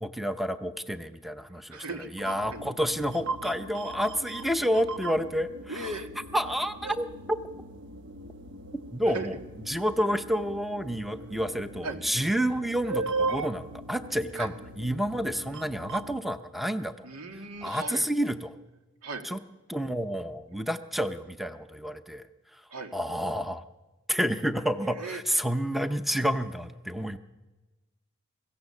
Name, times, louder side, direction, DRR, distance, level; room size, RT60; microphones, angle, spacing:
voice 1, 0.0-5.9 6.3-7.4 8.9-9.4 9.7-17.1 17.6-18.6 19.2-19.4 19.7-22.2 22.9-23.6 24.1-27.2, equal, ahead, 9 dB, 0.7 m, -29 dB
voice 2, 1.7-2.1 2.5-2.7 5.7-6.1 9.1-9.3 11.8-12.0 14.4-14.5 17.0-18.1 19.0-19.3 22.7-22.9 24.9-25.2, right 3 dB, 85° right, 4 dB, 2.2 m, -37 dB
sound 1, 2.2-16.2, right 3 dB, 60° right, 1.1 m, -38 dB
23.5 x 16.0 x 7.2 m, 1.2 s
head